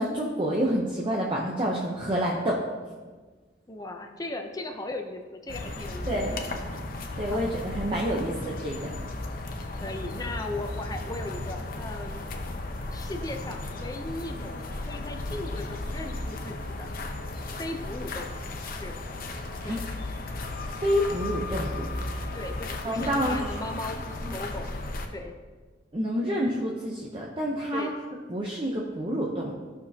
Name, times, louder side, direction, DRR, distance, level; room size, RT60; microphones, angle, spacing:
voice 1, 0.0-2.6 6.1-6.4 7.2-8.8 19.6-19.8 20.8-21.9 22.8-23.4 24.2-24.3 25.9-27.9 28.3-29.5, equal, 30° right, -3 dB, 0.8 m, -28 dB
voice 2, 3.7-6.6 7.3-7.5 9.1-9.2 9.7-12.3 12.9-14.6 14.9-16.9 17.4-19.0 19.6-19.8 22.3-24.0 24.3-24.7 25.1-25.3 27.7-27.9, left 2 dB, 20° left, 4 dB, 0.7 m, -37 dB
sound 1, 5.5-25.1, left 2 dB, 50° left, 0.8 m, -35 dB
14.0 x 6.1 x 2.9 m, 1.4 s
head